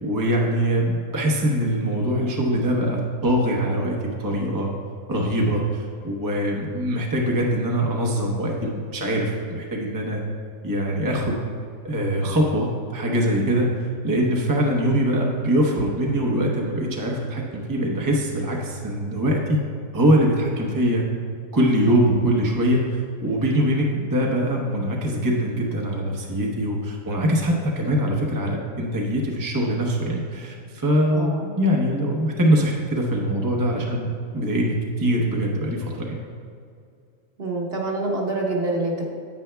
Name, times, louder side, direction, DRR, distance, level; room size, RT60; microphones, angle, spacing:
voice 1, 0.0-4.7 5.1-10.2 10.6-11.4 11.8-13.7 14.0-19.6 19.9-21.0 21.5-36.2, equal, 20° right, -1 dB, 0.7 m, -23 dB
voice 2, 31.1-31.4 37.4-39.0, right 2 dB, 45° right, -2 dB, 1.4 m, -26 dB
9.6 x 9.0 x 2.3 m, 2.4 s
omnidirectional pair, 1.4 m